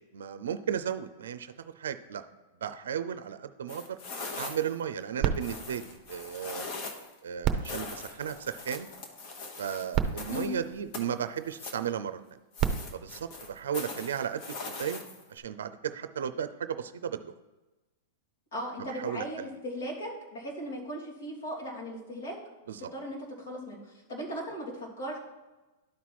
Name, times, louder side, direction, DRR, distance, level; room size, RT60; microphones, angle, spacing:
voice 1, 0.1-2.2 2.6-4.0 4.4-6.7 7.2-8.9 9.6-12.2 12.9-15.0 15.3-17.3 18.9-19.2 22.7-22.9, right 8 dB, 80° right, 12 dB, 0.5 m, -35 dB
sound 1, 3.7-4.8 5.4-7.1 7.6-10.6 10.9-11.9 12.5-15.4, left 3 dB, 45° left, 1.3 m, -41 dB
sound 2, 5.2-6.8 7.4-9.0 9.6-9.7 9.9-11.5 12.3-14.2 14.9-15.0, right 8 dB, 30° right, 0.7 m, -34 dB
voice 2, 18.5-22.4 22.8-25.2, equal, 75° left, -4 dB, 3.0 m, -38 dB
11.5 x 4.2 x 4.7 m, 1.1 s
hypercardioid pair, 130°, 0 cm